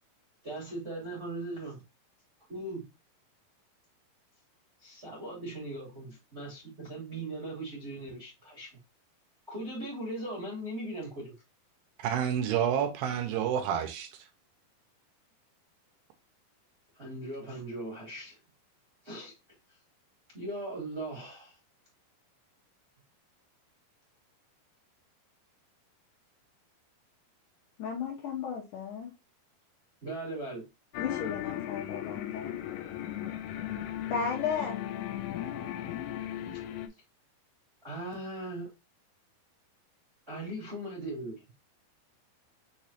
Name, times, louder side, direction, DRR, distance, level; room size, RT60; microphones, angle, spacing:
voice 1, 0.4-1.8 2.5-2.9 4.8-8.7 9.5-11.3 17.0-18.3 19.0-19.3 20.3-21.6 30.0-30.6 37.8-38.7 40.3-41.4, right 1 dB, 40° right, 0.9 m, -39 dB
voice 2, 12.0-14.1, right 9 dB, 80° right, 2.3 m, -29 dB
voice 3, 27.8-29.1 31.0-32.6 34.1-34.8, left 6 dB, 70° left, 2.1 m, -34 dB
sound 1, 30.9-36.9, left 12 dB, 90° left, 2.6 m, -37 dB
6.0 x 3.0 x 2.8 m
omnidirectional pair, 4.5 m